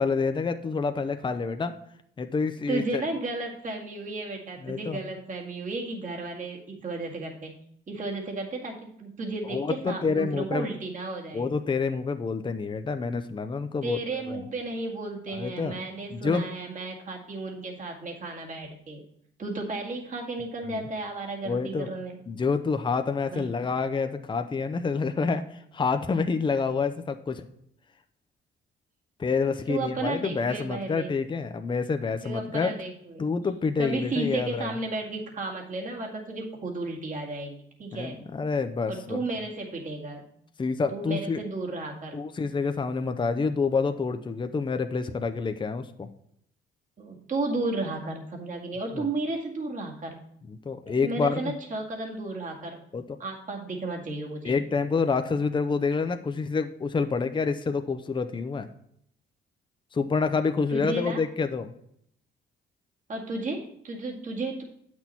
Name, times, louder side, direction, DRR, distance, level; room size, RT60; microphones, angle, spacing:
voice 1, 0.0-1.8 2.2-3.0 4.6-5.0 9.5-10.7 11.3-14.0 14.3-14.4 15.3-15.8 16.1-16.5 20.7-20.8 21.4-21.9 22.3-27.4 29.2-32.7 33.2-34.8 37.9-39.2 40.6-41.4 42.1-46.1 48.9-49.1 50.5-51.5 52.9-53.0 54.4-58.7 59.9-61.7, left 4 dB, 25° left, 8 dB, 0.6 m, -28 dB
voice 2, 2.7-7.5 7.9-11.5 13.8-19.0 19.4-22.2 23.3-23.6 29.7-31.1 32.2-33.2 33.8-38.2 38.9-40.3 40.9-42.2 47.0-50.2 50.9-52.8 53.2-54.6 60.7-61.2 63.1-64.6, right 2 dB, 40° right, 0 dB, 2.0 m, -33 dB
8.6 x 6.2 x 4.2 m, 0.70 s
cardioid pair, 90°, 20 cm